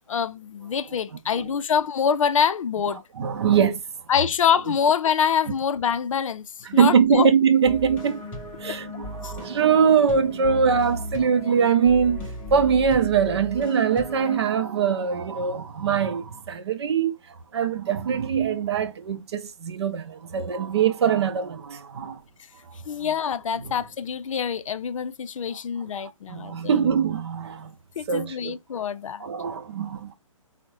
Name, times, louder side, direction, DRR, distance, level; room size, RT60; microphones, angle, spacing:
voice 1, 0.1-3.0 4.1-7.3 9.2-9.3 22.9-26.9 28.0-29.3, left 7 dB, 70° left, 0.4 m, -25 dB
voice 2, 0.9-1.5 2.9-3.8 4.7-4.8 6.6-8.2 8.6-12.2 12.5-22.2 23.0-23.2 23.6-23.7 26.0-27.8 28.1-28.6 29.2-30.1, right 7 dB, 50° right, 0.5 m, -23 dB
sound 1, 7.6-14.4, left 1 dB, 10° left, 0.6 m, -36 dB
3.4 x 2.1 x 3.0 m
hypercardioid pair, 160°, 17 cm